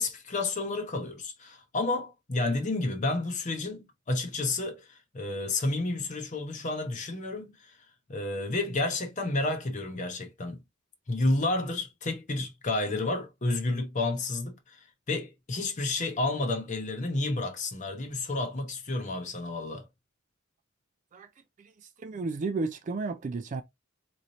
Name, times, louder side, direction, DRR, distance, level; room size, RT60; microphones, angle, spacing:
voice 1, 0.0-7.8 8.1-10.6 11.1-19.8, left 2 dB, 40° left, 0.8 m, -31 dB
voice 2, 22.0-23.6, right 3 dB, 40° right, 0.3 m, -32 dB
4.0 x 3.1 x 2.6 m
head